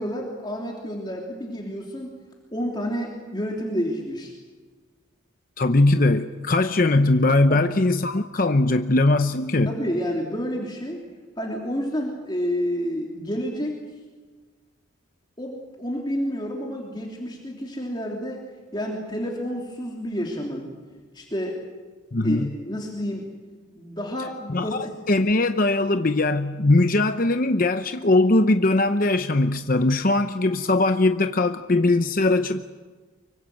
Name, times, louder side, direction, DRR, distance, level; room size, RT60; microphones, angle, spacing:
voice 1, 0.0-2.1 2.5-4.3 7.5-7.6 9.7-11.0 11.4-13.8 15.4-18.4 18.7-20.7 21.1-21.6 22.2-23.3 23.7-24.9, equal, 20° left, -1 dB, 3.2 m, -29 dB
voice 2, 5.6-9.8 22.1-22.6 24.5-32.6, left 2 dB, 45° left, 8 dB, 0.8 m, -20 dB
25.0 x 24.0 x 7.7 m, 1.4 s
head